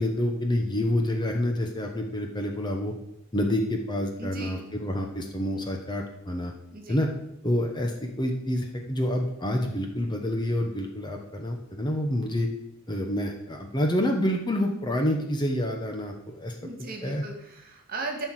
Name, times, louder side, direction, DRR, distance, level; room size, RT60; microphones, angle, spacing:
voice 1, 0.0-2.9 3.3-6.5 6.9-7.1 7.4-12.5 12.9-16.6 17.0-17.2, left 1 dB, 20° left, 2 dB, 1.1 m, -28 dB
voice 2, 4.2-4.6 6.7-7.0 16.6-18.3, right 3 dB, 45° right, 2 dB, 2.0 m, -37 dB
13.0 x 4.7 x 7.6 m, 0.83 s
head